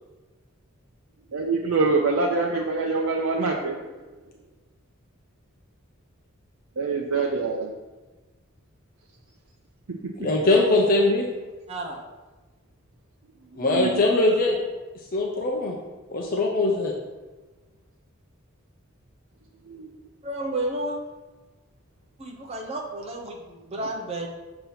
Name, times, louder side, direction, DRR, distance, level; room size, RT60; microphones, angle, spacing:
voice 1, 1.3-3.8 6.8-7.7 10.0-10.3 13.5-14.0 19.7-19.9, right 3 dB, 85° right, 0 dB, 0.6 m, -25 dB
voice 2, 10.2-11.3 13.6-14.6 15.1-15.7 16.1-16.9, left 2 dB, 45° left, 0 dB, 0.6 m, -21 dB
voice 3, 11.7-12.0 20.2-21.0 22.2-24.3, right 1 dB, 30° right, -1 dB, 0.8 m, -31 dB
6.8 x 2.9 x 5.7 m, 1.2 s
head